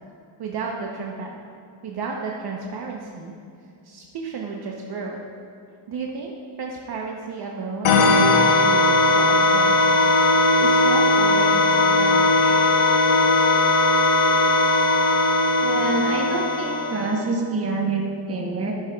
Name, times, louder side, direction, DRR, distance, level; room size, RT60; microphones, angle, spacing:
voice 1, 0.4-1.3 1.8-3.4 3.8-5.2 5.9-6.3 6.6-10.0 10.6-12.6, right 4 dB, 50° right, 0 dB, 0.8 m, -32 dB
sound 1, 7.8-17.3, left 2 dB, 70° left, 1.1 m, -18 dB
voice 2, 15.6-18.7, right 3 dB, 30° right, 0 dB, 1.1 m, -26 dB
13.0 x 10.5 x 2.3 m, 2.5 s
cardioid pair, 165°, 48 cm